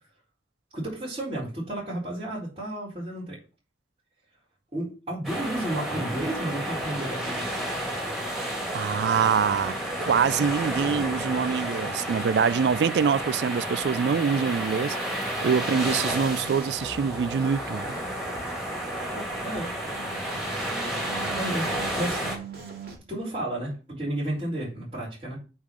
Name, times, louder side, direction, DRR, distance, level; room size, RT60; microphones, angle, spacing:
voice 1, 0.7-3.4 4.7-7.4 19.1-19.7 21.3-22.3 23.1-25.4, right 1 dB, 35° right, 4.2 m, -32 dB
sound 1, 5.2-22.4, right 1 dB, ahead, 2.4 m, -31 dB
voice 2, 8.7-18.0, right 6 dB, 80° right, 0.4 m, -25 dB
sound 2, 16.3-23.0, right 4 dB, 60° right, 2.7 m, -42 dB
8.5 x 3.8 x 6.1 m
head